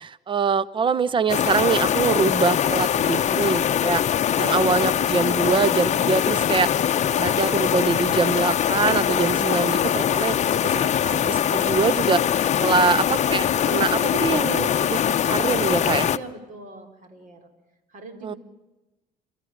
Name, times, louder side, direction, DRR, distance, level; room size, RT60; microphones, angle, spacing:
voice 1, 0.0-6.7 7.2-12.2 12.6-16.1 18.2-18.3, right 5 dB, 30° right, 17 dB, 0.8 m, -24 dB
sound 1, 1.3-16.2, left 9 dB, 45° left, 0.7 m, -22 dB
voice 2, 16.1-17.5 17.9-18.4, right 3 dB, 50° right, 7 dB, 4.4 m, -41 dB
29.5 x 14.0 x 9.3 m, 1.1 s
cardioid pair, 110°, 17 cm